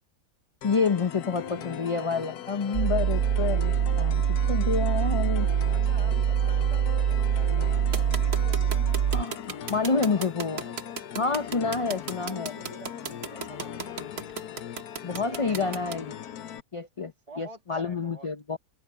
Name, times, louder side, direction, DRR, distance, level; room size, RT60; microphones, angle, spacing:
sound 1, 0.6-16.6, left 10 dB, 85° left, 1.4 m, -40 dB
voice 1, 0.6-5.5 9.1-10.6 11.2-12.5 15.0-16.1 16.7-17.1 17.4-18.6, left 4 dB, 40° left, 0.4 m, -28 dB
voice 2, 1.3-3.5 5.7-9.1 9.6-11.0 12.3-14.2 15.0-16.0 17.3-18.3, right 1 dB, 25° right, 2.4 m, -48 dB
sound 2, 2.7-9.2, right 9 dB, 80° right, 0.5 m, -24 dB
sound 3, 7.9-16.0, right 5 dB, 45° right, 1.4 m, -35 dB
omnidirectional pair, 1.6 m